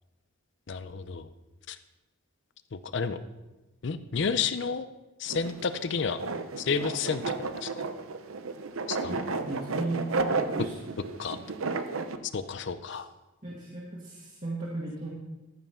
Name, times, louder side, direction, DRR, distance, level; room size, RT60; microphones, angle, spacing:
voice 1, 0.7-1.3 1.7-1.8 2.7-3.2 3.8-4.9 5.2-6.2 6.6-7.9 8.9-9.1 11.2-11.4 12.3-13.1, left 5 dB, 55° left, 12 dB, 0.5 m, -31 dB
sound 1, 5.3-12.2, right 3 dB, 75° right, 0.7 m, -33 dB
voice 2, 9.1-10.9 12.9-13.0 13.4-15.1, right 2 dB, 35° right, -6 dB, 1.7 m, -36 dB
14.0 x 5.6 x 5.7 m, 1.1 s
head